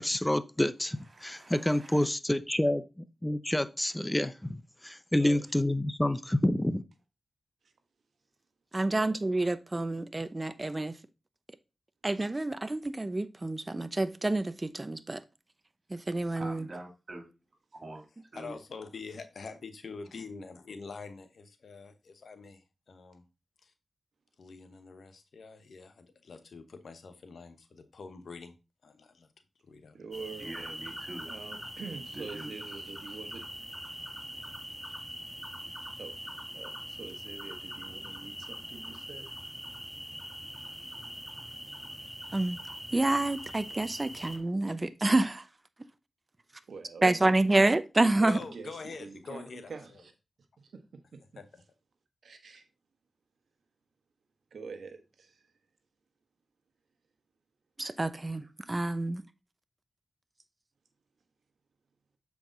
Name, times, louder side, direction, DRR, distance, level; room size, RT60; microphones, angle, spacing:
voice 1, 0.0-6.8, left 1 dB, 15° left, 0.7 m, -28 dB
voice 2, 1.0-2.1 16.4-17.3 17.7-18.0 18.3-18.6 30.4-31.3 32.1-32.5, right 2 dB, 50° right, 2.7 m, -44 dB
voice 3, 5.2-5.5 7.6-7.7 8.9-9.1 29.9-30.5 31.2-33.6 36.0-36.1 36.5-39.3 46.7-47.5 48.2-50.1 50.6-51.4 52.2-52.6 54.5-55.5, right 4 dB, 80° right, 1.2 m, -45 dB
voice 4, 8.7-11.0 12.0-15.2 15.9-16.7 42.3-42.6 42.9-45.4 47.0-48.4 57.8-59.2, right 2 dB, 30° right, 0.7 m, -28 dB
voice 5, 18.3-23.2 23.6-23.7 24.4-28.5 28.8-29.3 29.6-30.0 30.5-30.6 48.3-49.7 51.4-51.6, left 4 dB, 75° left, 1.0 m, -45 dB
sound 1, 30.1-44.4, equal, 5° right, 1.8 m, -43 dB
7.3 x 4.8 x 3.9 m
cardioid pair, 45°, 0 cm